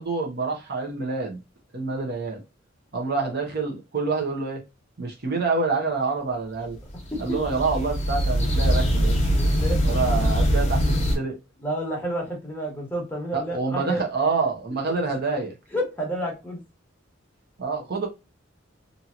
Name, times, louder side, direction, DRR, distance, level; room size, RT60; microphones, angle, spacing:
voice 1, 0.0-1.4 1.7-2.4 2.9-4.6 5.0-6.8 7.2-9.2 9.8-11.4 13.3-15.5 17.6-18.1, right 4 dB, 55° right, 0.9 m, -27 dB
sound 1, 6.7-11.2, equal, 35° left, 0.9 m, -22 dB
voice 2, 9.3-9.8 11.6-14.0 15.7-16.6, equal, 10° left, 1.1 m, -30 dB
2.9 x 2.7 x 2.4 m
head